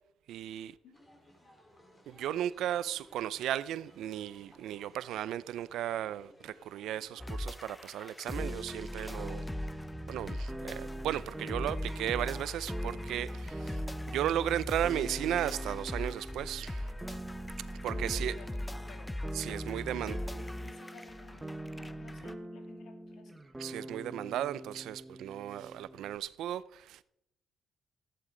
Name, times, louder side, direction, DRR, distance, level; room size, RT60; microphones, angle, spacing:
voice 1, 0.3-0.8 2.1-9.4 10.1-13.8 14.1-17.2 17.6-18.4 19.3-20.2 23.6-27.0, right 11 dB, 80° right, 0.5 m, -35 dB
sound 1, 0.9-7.5, equal, 25° left, 4.1 m, -60 dB
sound 2, 7.2-22.3, left 1 dB, 10° left, 0.6 m, -40 dB
sound 3, 8.4-26.2, right 1 dB, 15° right, 1.1 m, -44 dB
voice 2, 17.9-19.1 19.6-23.4, left 5 dB, 75° left, 2.7 m, -56 dB
14.5 x 11.0 x 3.9 m
cardioid pair, 90°, 0 cm